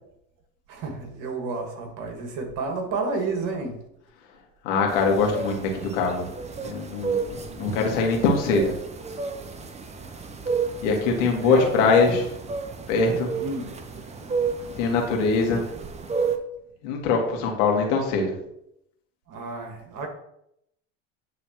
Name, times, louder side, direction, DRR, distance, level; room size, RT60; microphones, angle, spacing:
voice 1, 0.7-3.8 11.4-11.9 13.3-14.8 19.3-20.1, right 3 dB, 50° right, 3 dB, 1.6 m, -32 dB
voice 2, 4.6-6.3 6.6-8.7 10.8-12.2 12.9-13.3 14.8-15.6 16.8-18.3, left 4 dB, 65° left, 1 dB, 1.7 m, -22 dB
sound 1, 4.9-16.4, right 5 dB, 15° right, 0.6 m, -32 dB
9.5 x 3.3 x 3.0 m, 0.77 s
hypercardioid pair, 80°, 39 cm